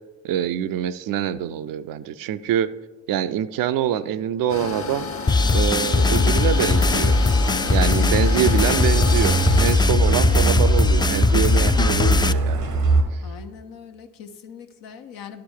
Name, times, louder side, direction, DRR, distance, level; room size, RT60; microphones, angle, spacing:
voice 1, 0.2-2.7 3.1-5.1 5.5-7.2 7.7-12.6, right 10 dB, 75° right, 13 dB, 0.5 m, -25 dB
sound 1, 4.5-9.8, left 4 dB, 40° left, 1.2 m, -31 dB
sound 2, 5.3-12.3, left 3 dB, 15° left, 0.3 m, -19 dB
Truck, 6.6-13.0, right 3 dB, 90° right, 1.1 m, -24 dB
voice 2, 13.2-15.4, left 7 dB, 80° left, 6 dB, 0.8 m, -41 dB
11.5 x 5.2 x 4.4 m, 1.2 s
hypercardioid pair, 40°, 34 cm